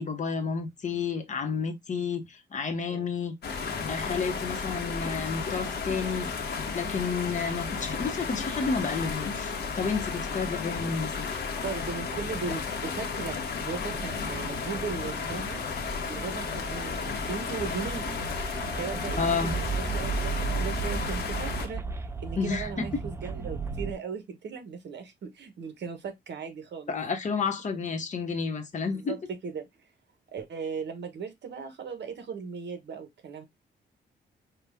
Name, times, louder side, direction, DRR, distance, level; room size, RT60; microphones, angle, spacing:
voice 1, 0.0-3.3 3.9-6.3 6.7-11.3 19.2-19.5 22.4-22.7 26.9-29.1, left 5 dB, 40° left, 1.1 m, -31 dB
sound 1, 3.4-21.7, left 5 dB, 60° left, 1.2 m, -33 dB
voice 2, 11.6-15.6 16.1-18.0 18.8-27.0 28.9-29.7 30.3-33.4, right 5 dB, 65° right, 1.3 m, -37 dB
sound 2, 13.9-23.9, right 5 dB, 15° right, 0.4 m, -35 dB
5.8 x 2.4 x 3.5 m
wide cardioid pair, 155°, 19 cm